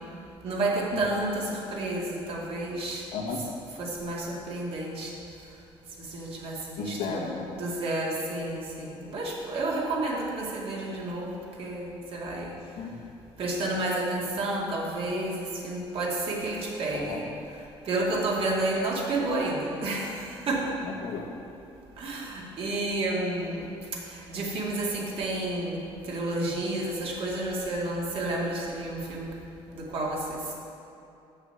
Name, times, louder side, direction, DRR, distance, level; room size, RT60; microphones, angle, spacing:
voice 1, 0.4-3.0 3.8-5.1 6.1-12.5 13.4-17.2 17.9-20.8 22.0-23.7 24.1-29.3 29.7-30.5, right 2 dB, 55° right, -3 dB, 2.1 m, -30 dB
voice 2, 3.1-3.4 6.8-7.5 12.8-13.0 16.9-17.2 20.8-21.3, left 4 dB, 85° left, -2 dB, 1.5 m, -34 dB
7.2 x 7.1 x 6.9 m, 2.7 s
cardioid pair, 100°, 11 cm